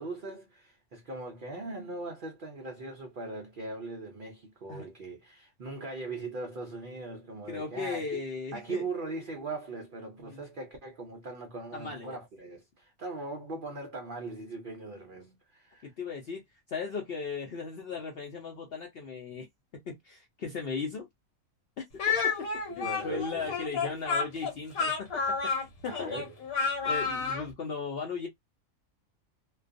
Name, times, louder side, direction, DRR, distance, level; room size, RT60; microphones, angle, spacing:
voice 1, 0.0-8.2 8.5-15.9 22.7-23.6 25.8-26.3, right 3 dB, 60° right, 0.5 m, -40 dB
voice 2, 7.5-8.8 10.2-10.4 11.7-12.2 15.8-16.4 16.7-19.5 19.8-21.1 21.8-21.9 22.2-22.3 22.8-26.1 26.8-28.3, left 4 dB, 60° left, 0.7 m, -37 dB
Speech, 22.0-27.5, left 5 dB, 75° left, 1.2 m, -30 dB
2.3 x 2.3 x 2.5 m
omnidirectional pair, 1.5 m